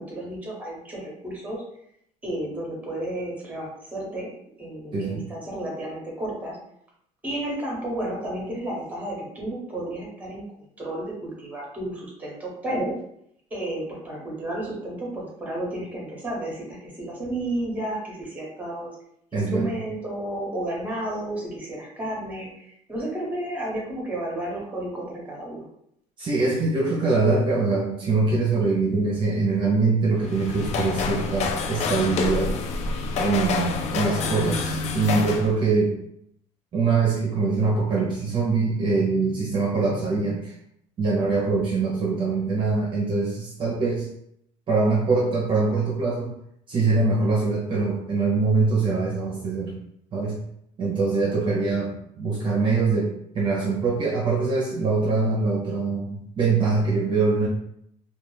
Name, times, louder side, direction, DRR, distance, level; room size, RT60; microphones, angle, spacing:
voice 1, 0.0-1.6 2.2-4.3 4.6-6.6 7.2-10.4 10.8-13.0 13.5-18.9 19.3-25.7, right 1 dB, 10° right, -2 dB, 0.9 m, -32 dB
voice 2, 4.9-5.2 19.3-19.7 26.2-32.5 33.1-36.0 36.7-40.5 41.0-44.1 44.7-46.3 46.7-49.7 50.1-50.4 50.8-57.5, right 3 dB, 35° right, -4 dB, 0.6 m, -23 dB
sound 1, 30.2-35.5, left 4 dB, 50° left, 0.4 m, -27 dB
2.3 x 2.3 x 3.2 m, 0.73 s
cardioid pair, 130°, 14 cm